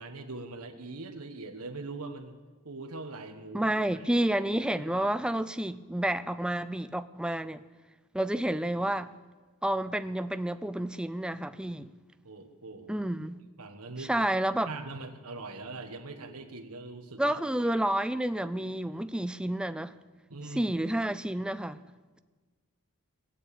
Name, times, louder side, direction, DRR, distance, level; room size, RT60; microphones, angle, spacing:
voice 1, 0.0-2.4 2.6-4.0 4.8-5.1 12.2-13.1 13.6-14.1 14.7-17.7 20.3-20.7, right 3 dB, 75° right, 1.5 m, -42 dB
voice 2, 3.5-7.6 8.1-9.1 9.6-11.9 12.9-13.4 14.1-14.7 17.2-20.0 20.5-21.8, right 1 dB, 5° right, 0.4 m, -30 dB
20.0 x 7.2 x 8.7 m
head